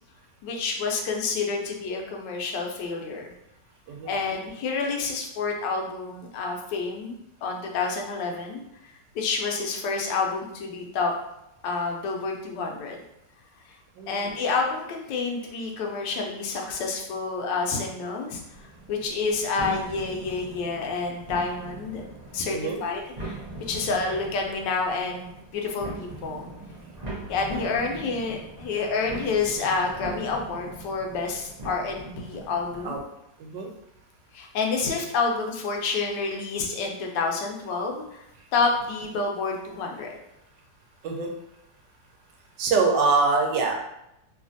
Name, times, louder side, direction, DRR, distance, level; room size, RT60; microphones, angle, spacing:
voice 1, 0.4-3.3 4.1-8.6 9.1-11.1 11.6-13.0 14.1-18.4 18.9-22.0 22.3-26.5 27.3-33.0 34.3-38.2 38.5-40.1, left 4 dB, 80° left, 1 dB, 1.2 m, -28 dB
voice 2, 14.0-14.3 22.5-22.8 32.8-33.0 33.4-33.7 41.0-41.3 42.6-43.8, right 4 dB, 85° right, 1 dB, 1.2 m, -24 dB
sound 1, 18.5-33.0, right 2 dB, 55° right, 0.4 m, -41 dB
3.2 x 2.4 x 2.5 m, 0.83 s
omnidirectional pair, 1.9 m